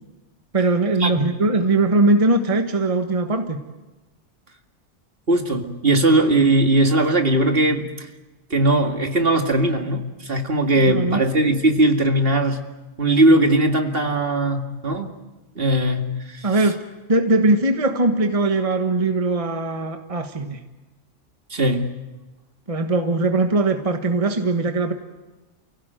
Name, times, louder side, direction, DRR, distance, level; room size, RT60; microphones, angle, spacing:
voice 1, 0.5-3.6 10.9-11.2 16.4-16.8 17.1-20.6 22.7-24.9, right 2 dB, 30° right, 5 dB, 1.4 m, -20 dB
voice 2, 5.3-7.9 8.5-12.6 13.0-15.1 15.6-16.5 21.5-21.9, right 1 dB, 50° right, 4 dB, 2.3 m, -19 dB
29.5 x 17.0 x 9.2 m, 1.1 s
omnidirectional pair, 1.2 m